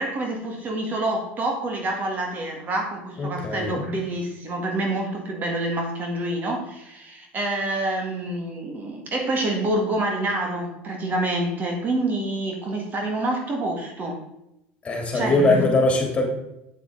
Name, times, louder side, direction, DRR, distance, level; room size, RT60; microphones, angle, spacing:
voice 1, 0.0-14.2 15.1-15.7, right 1 dB, 35° right, 2 dB, 1.9 m, -27 dB
voice 2, 3.2-3.7 14.8-16.3, left 2 dB, 25° left, 1 dB, 3.2 m, -21 dB
8.5 x 7.9 x 3.9 m, 0.83 s
supercardioid pair, 100°, 5 cm